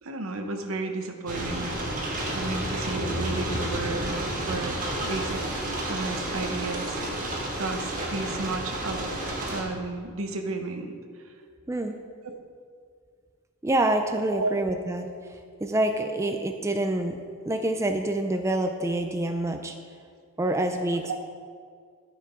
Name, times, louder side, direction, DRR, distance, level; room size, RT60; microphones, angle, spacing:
voice 1, 0.0-1.7 2.3-4.2 4.5-4.8 5.0-7.0 7.6-9.1 9.5-11.0 11.2-11.3 12.2-12.3 14.3-14.5 21.0-21.2, right 2 dB, 70° right, 5 dB, 0.9 m, -33 dB
sound 1, 1.3-9.6, right 1 dB, 40° right, 1.6 m, -31 dB
voice 2, 13.6-15.1 15.6-17.2 17.5-19.7 20.4-21.2, right 1 dB, 15° right, 5 dB, 0.4 m, -26 dB
13.0 x 6.0 x 4.4 m, 2.1 s
head